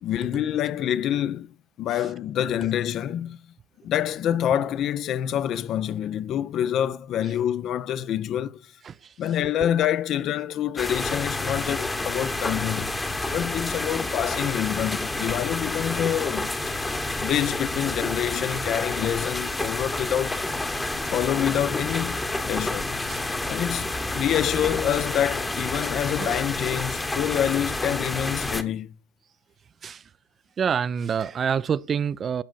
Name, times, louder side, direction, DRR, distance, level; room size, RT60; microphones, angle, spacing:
voice 1, 0.0-3.4 3.8-8.7 9.2-13.0 13.3-16.8 17.2-20.4 21.1-22.9 23.5-28.9, left 10 dB, 45° left, 0.4 m, -27 dB
sound 1, 10.8-28.6, left 2 dB, 15° left, 0.9 m, -29 dB
voice 2, 30.6-32.4, right 7 dB, 30° right, 0.3 m, -27 dB
13.0 x 5.0 x 2.5 m
hypercardioid pair, 85°, 0 cm